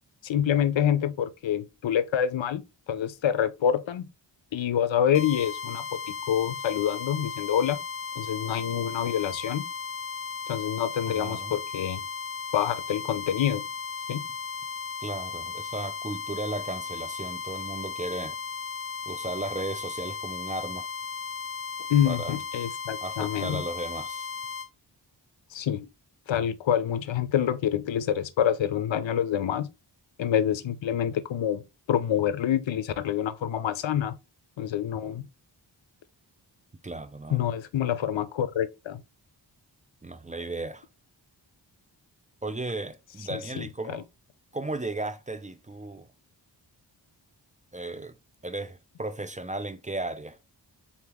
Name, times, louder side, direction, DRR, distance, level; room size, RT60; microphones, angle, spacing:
voice 1, 0.2-2.6 2.9-4.0 4.5-7.8 8.2-9.6 10.5-12.0 12.5-13.7 14.1-14.2 21.9-23.6 25.5-25.9 26.3-29.7 30.2-31.6 31.9-34.2 34.6-35.3 37.3-39.0 43.3-44.0, left 9 dB, 85° left, 0.6 m, -27 dB
sound 1, 5.1-24.7, left 5 dB, 30° left, 0.5 m, -36 dB
voice 2, 11.1-11.6 15.0-18.4 19.1-20.9 22.0-22.4 23.0-24.3 36.8-37.4 40.0-40.9 42.4-44.0 44.5-46.1 47.7-48.2 48.4-50.4, right 2 dB, 15° right, 0.5 m, -35 dB
4.2 x 2.9 x 3.5 m
cardioid pair, 45°, 44 cm